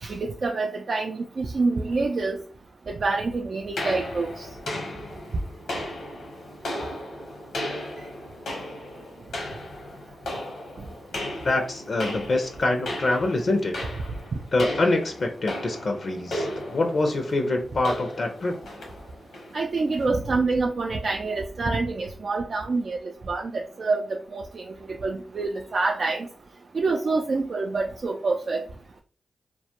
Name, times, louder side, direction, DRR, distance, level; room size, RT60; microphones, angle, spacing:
voice 1, 0.0-2.4 2.9-4.5 19.5-23.0 23.3-24.6 25.0-26.3 26.7-28.6, right 3 dB, 60° right, 1 dB, 0.3 m, -26 dB
sound 1, 3.8-20.1, left 1 dB, 85° left, 0.8 m, -36 dB
voice 2, 11.4-13.7 14.5-18.6, left 2 dB, 60° left, 4 dB, 0.4 m, -25 dB
2.2 x 2.1 x 2.8 m, 0.39 s
supercardioid pair, 40°, 0 cm